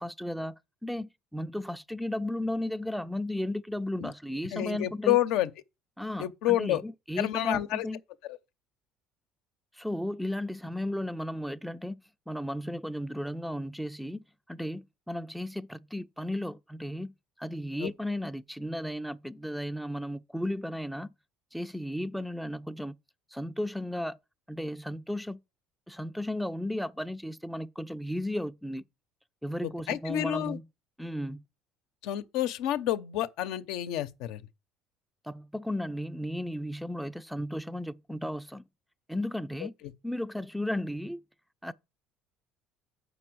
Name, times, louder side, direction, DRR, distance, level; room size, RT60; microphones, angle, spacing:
voice 1, 0.0-5.2 6.0-8.0 9.8-12.0 12.3-17.1 17.4-21.1 21.5-23.0 23.3-24.2 24.5-25.4 25.9-28.8 29.4-30.6 31.0-31.4 35.2-38.6 39.1-39.7 40.0-41.2 41.6-41.7, left 1 dB, ahead, 0.4 m, -34 dB
voice 2, 4.5-5.5 6.2-6.8 7.2-7.9 8.3-8.4 17.8-17.9 29.6-30.6 32.0-34.4 39.8-39.9, left 13 dB, 75° left, 0.7 m, -29 dB
6.9 x 5.4 x 6.1 m
cardioid pair, 110°, 0 cm